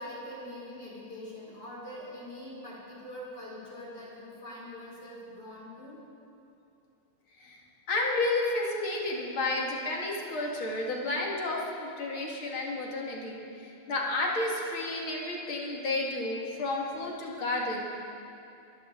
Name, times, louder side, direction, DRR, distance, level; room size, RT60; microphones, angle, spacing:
voice 1, 0.0-6.0, left 1 dB, 50° left, -5 dB, 4.9 m, -43 dB
voice 2, 7.9-17.8, left 2 dB, 70° left, -2 dB, 2.9 m, -31 dB
24.0 x 14.0 x 3.8 m, 2.7 s
omnidirectional pair, 2.4 m